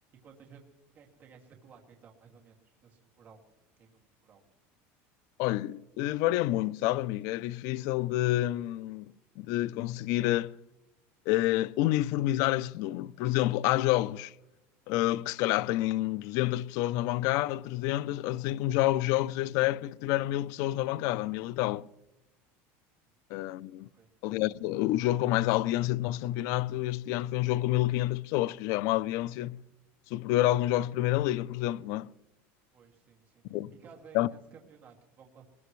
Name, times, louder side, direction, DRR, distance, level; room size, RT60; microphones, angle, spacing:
voice 1, 0.2-0.6 0.9-3.4 3.8-4.4 23.9-24.1 32.7-33.4 33.8-35.4, right 6 dB, 30° right, 2.4 m, -55 dB
voice 2, 5.4-10.6 11.3-14.3 14.9-21.9 23.3-23.9 24.2-29.6 30.1-32.1 33.5-33.7 34.1-34.3, left 15 dB, 55° left, 0.4 m, -28 dB
22.0 x 20.5 x 3.2 m
cardioid pair, 165°, 6 cm